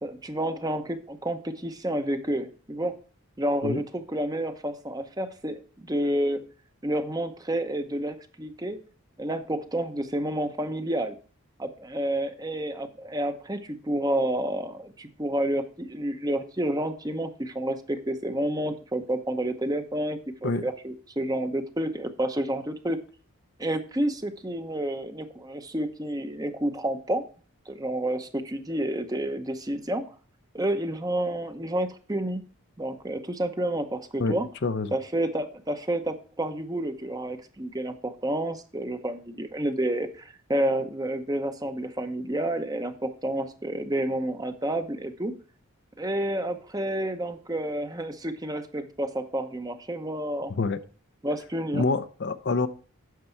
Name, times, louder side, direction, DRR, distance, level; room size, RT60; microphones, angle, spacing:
voice 1, 0.0-2.9 3.4-6.4 6.8-8.8 9.2-11.2 11.6-23.0 23.6-27.2 27.7-30.0 30.5-32.4 32.8-34.5 34.9-45.3 46.0-50.5 51.2-51.8, right 1 dB, 15° right, 0.8 m, -29 dB
voice 2, 34.6-34.9 50.5-50.8 51.7-52.7, left 3 dB, 50° left, 0.5 m, -26 dB
9.5 x 6.7 x 4.5 m
head